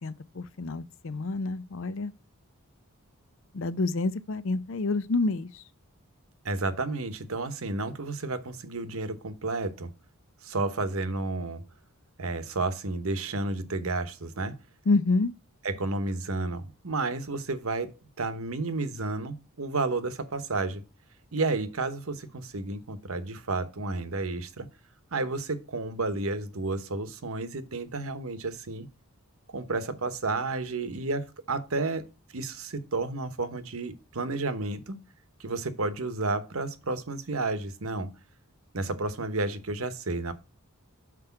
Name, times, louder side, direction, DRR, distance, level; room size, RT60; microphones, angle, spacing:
voice 1, 0.0-2.1 3.5-5.5 14.9-15.3, left 3 dB, 60° left, 0.5 m, -28 dB
voice 2, 6.4-9.9 10.4-11.6 12.2-14.6 15.6-20.8 21.3-24.7 25.1-28.9 29.5-32.0 32.3-35.0 35.4-38.1 38.7-40.3, right 3 dB, 70° right, 1.0 m, -31 dB
6.1 x 4.9 x 5.7 m
head